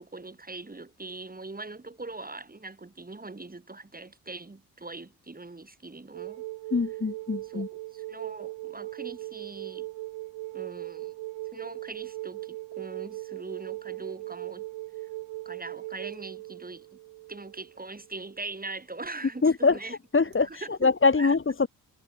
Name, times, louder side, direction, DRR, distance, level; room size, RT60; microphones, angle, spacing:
voice 1, 0.0-6.4 7.4-9.9 10.5-11.2 11.5-14.6 15.5-16.9 17.3-20.0 20.5-20.9 21.2-21.4, right 3 dB, 20° right, 3.6 m, -41 dB
sound 1, 6.1-18.6 20.3-20.4, right 19 dB, 90° right, 5.9 m, -39 dB
voice 2, 6.7-7.7 19.4-21.7, left 4 dB, 30° left, 1.8 m, -24 dB
supercardioid pair, 55°, 43 cm